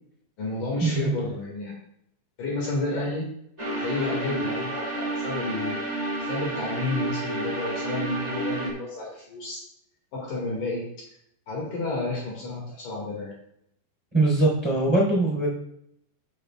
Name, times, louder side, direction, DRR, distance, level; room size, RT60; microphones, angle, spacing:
voice 1, 0.4-1.7 2.4-3.3 3.8-5.8 6.2-9.6 10.1-10.9 11.5-13.4, left 2 dB, 55° left, -3 dB, 3.3 m, -31 dB
sound 1, 3.6-8.7, right 2 dB, 25° right, 0.8 m, -30 dB
voice 2, 14.1-15.5, right 2 dB, 10° right, -4 dB, 3.2 m, -22 dB
14.5 x 6.9 x 2.4 m, 0.73 s
omnidirectional pair, 5.0 m